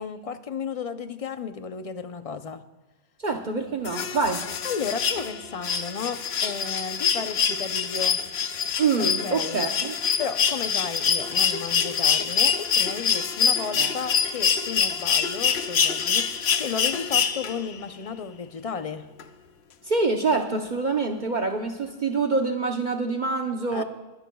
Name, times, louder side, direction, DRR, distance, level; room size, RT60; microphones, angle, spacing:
voice 1, 0.0-2.6 4.6-8.2 9.0-9.7 10.2-19.1 23.7-23.8, left 6 dB, 40° left, 9 dB, 0.7 m, -33 dB
voice 2, 3.2-4.4 8.8-10.0 13.8-13.9 19.8-23.8, right 4 dB, 50° right, 2 dB, 1.0 m, -26 dB
sound 1, 3.8-17.8 19.2-19.3, left 7 dB, 90° left, 1.0 m, -25 dB
22.0 x 18.0 x 2.3 m, 1.1 s
omnidirectional pair, 1.0 m